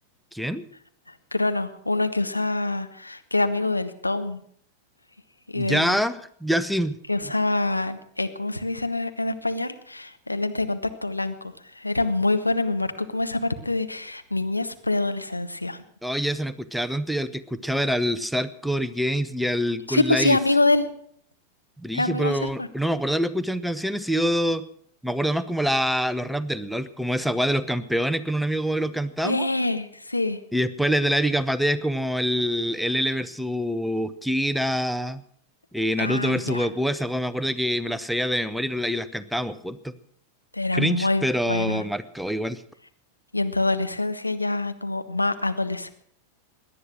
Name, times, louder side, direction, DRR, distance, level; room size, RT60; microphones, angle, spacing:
voice 1, 0.3-0.7 5.6-7.0 16.0-20.4 21.8-24.6 25.0-29.5 30.5-35.2 35.7-39.9 40.7-42.6, equal, ahead, 14 dB, 0.7 m, -25 dB
voice 2, 1.1-4.4 5.5-6.0 7.1-15.8 19.9-20.9 21.9-22.7 29.2-30.4 36.0-36.7 40.5-41.9 43.3-45.9, left 2 dB, 85° left, 9 dB, 0.9 m, -25 dB
18.0 x 11.0 x 6.3 m, 0.64 s
figure-of-eight pair, 90°, 0 cm